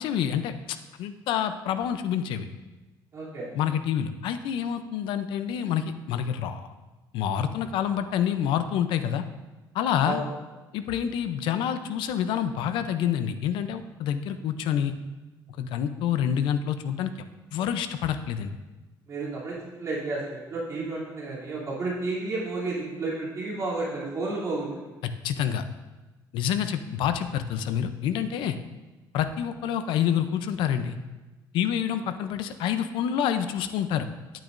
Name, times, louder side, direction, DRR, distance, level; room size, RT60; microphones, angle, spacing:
voice 1, 0.0-2.5 3.5-6.7 7.1-9.2 9.7-10.2 10.7-14.9 15.6-17.1 17.5-18.5 25.2-25.6 26.3-28.6 29.1-31.0 31.5-34.1, left 9 dB, 80° left, 10 dB, 0.6 m, -27 dB
voice 2, 3.1-3.5 10.0-10.3 19.1-24.9 32.0-32.1, right 2 dB, 40° right, -7 dB, 3.0 m, -32 dB
10.0 x 9.0 x 2.6 m, 1.1 s
cardioid pair, 140°, 8 cm